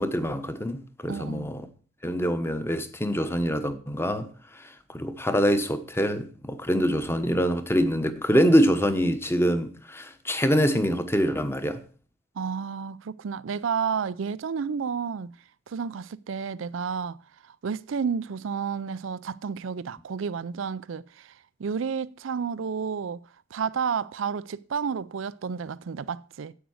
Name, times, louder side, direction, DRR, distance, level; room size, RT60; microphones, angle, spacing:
voice 1, 0.0-1.7 2.0-4.3 4.9-11.8, equal, 15° left, 1.1 m, -25 dB
voice 2, 1.1-1.5 12.4-15.3 15.7-17.2 17.4-23.2 23.5-26.5, right 6 dB, 75° right, 0.4 m, -31 dB
10.0 x 8.1 x 6.4 m
head